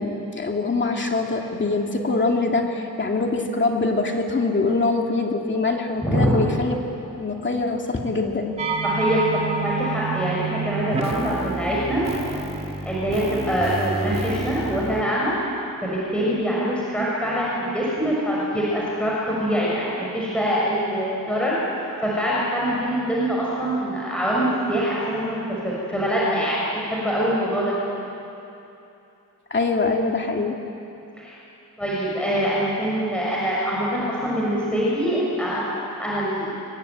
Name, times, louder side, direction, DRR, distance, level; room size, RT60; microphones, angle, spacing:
voice 1, 0.0-6.8 7.1-8.6 29.5-30.6, left 3 dB, 35° left, 1 dB, 2.6 m, -24 dB
voice 2, 6.0-6.3 8.8-12.0 12.8-15.3 15.8-21.5 22.0-27.7 31.2-31.4 31.8-36.5, equal, 5° left, -6 dB, 6.5 m, -24 dB
sound 1, 8.6-15.0, right 3 dB, 20° right, 2.5 m, -28 dB
25.5 x 23.5 x 9.6 m, 2.8 s
wide cardioid pair, 145°, 34 cm